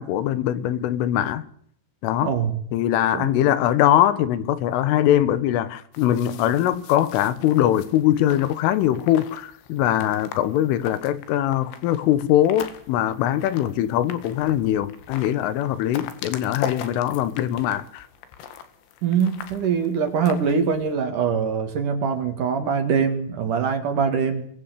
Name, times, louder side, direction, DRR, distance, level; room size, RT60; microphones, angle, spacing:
voice 1, 0.0-1.4 2.0-2.3 2.7-18.1, left 12 dB, 90° left, 3.8 m, -22 dB
voice 2, 2.2-2.6 3.1-3.4 19.0-24.5, right 6 dB, 50° right, 2.9 m, -23 dB
sound 1, 5.9-20.9, left 8 dB, 70° left, 4.0 m, -40 dB
24.5 x 19.0 x 8.3 m
omnidirectional pair, 5.6 m